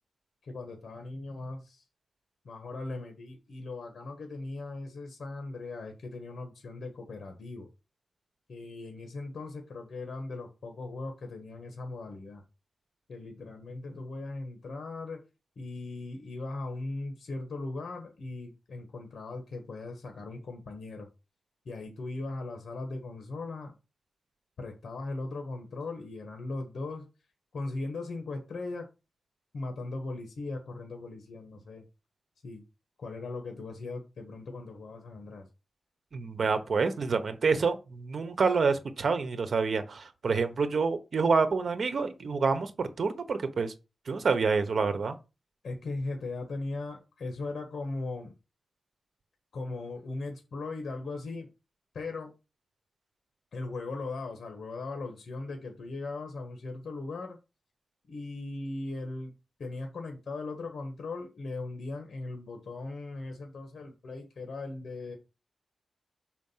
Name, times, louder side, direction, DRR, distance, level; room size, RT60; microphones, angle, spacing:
voice 1, 0.4-1.8 2.4-7.7 8.5-12.4 13.1-15.2 15.6-21.1 21.6-23.7 24.6-27.1 27.5-28.9 29.5-31.8 32.4-32.6 33.0-35.5 45.6-48.3 49.5-51.5 51.9-52.3 53.5-57.4 58.1-59.3 59.6-65.2, left 3 dB, 75° left, 1.5 m, -38 dB
voice 2, 36.1-43.7 44.1-45.2, right 4 dB, 60° right, 1.2 m, -27 dB
6.3 x 5.1 x 5.6 m
wide cardioid pair, 115°, 0 cm